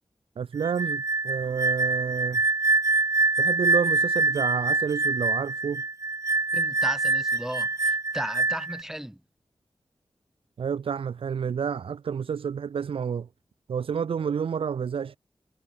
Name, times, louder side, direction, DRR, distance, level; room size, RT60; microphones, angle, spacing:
voice 1, 0.4-2.4 3.4-5.8 10.6-13.3 13.7-15.2, right 7 dB, 75° right, 0.4 m, -29 dB
sound 1, 0.6-8.8, right 3 dB, 35° right, 0.8 m, -25 dB
voice 2, 6.5-9.2, equal, 5° right, 1.4 m, -36 dB
cardioid pair, 55°, 9 cm